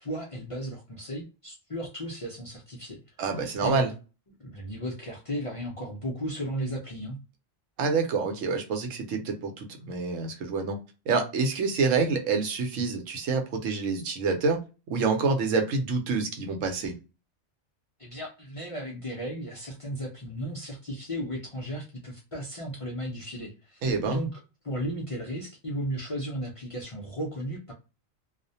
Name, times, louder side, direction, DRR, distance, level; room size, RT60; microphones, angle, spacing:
voice 1, 0.0-3.0 3.3-3.8 4.4-7.2 18.0-27.7, equal, 55° left, -1 dB, 0.3 m, -35 dB
voice 2, 3.2-3.9 7.8-10.8 11.1-14.6 14.9-16.9 23.8-24.2, right 4 dB, 90° right, 4 dB, 1.0 m, -27 dB
2.4 x 2.1 x 2.6 m, 0.30 s
omnidirectional pair, 1.3 m